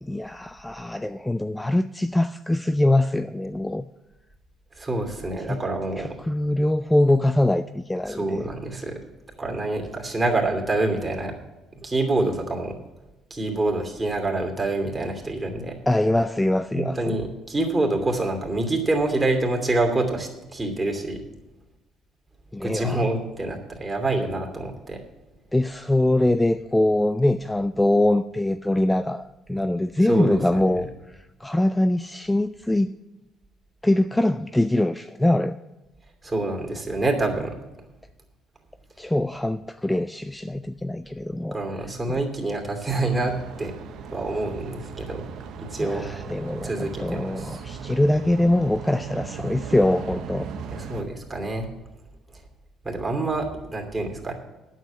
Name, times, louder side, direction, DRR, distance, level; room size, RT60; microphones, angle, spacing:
voice 1, 0.0-3.9 5.5-5.6 6.0-8.5 15.9-17.2 22.5-23.0 25.5-32.9 33.8-35.6 39.0-41.6 45.8-50.5, left 1 dB, 10° left, 0.4 m, -23 dB
voice 2, 4.8-6.1 8.1-9.0 9.4-11.3 11.8-12.7 13.3-15.8 16.7-21.2 22.6-25.0 30.1-30.8 36.2-37.6 41.5-43.7 44.1-45.2 45.6-46.1 46.6-47.6 50.7-51.7 52.8-54.3, right 2 dB, 20° right, 2.7 m, -26 dB
sound 1, 42.9-51.0, right 6 dB, 70° right, 1.0 m, -37 dB
9.1 x 7.5 x 8.5 m
supercardioid pair, 70°, 0 cm